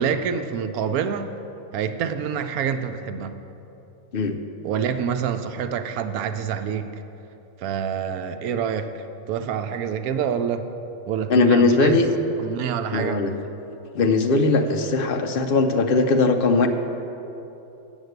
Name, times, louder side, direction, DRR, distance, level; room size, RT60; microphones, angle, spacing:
voice 1, 0.0-1.3 1.7-3.4 4.6-7.0 7.6-10.7 11.1-12.1 12.4-13.2, right 7 dB, 80° right, 9 dB, 1.0 m, -26 dB
voice 2, 11.3-12.1 12.9-13.3 13.9-16.7, left 3 dB, 55° left, 5 dB, 0.7 m, -19 dB
8.1 x 7.2 x 8.0 m, 2.9 s
omnidirectional pair, 1.5 m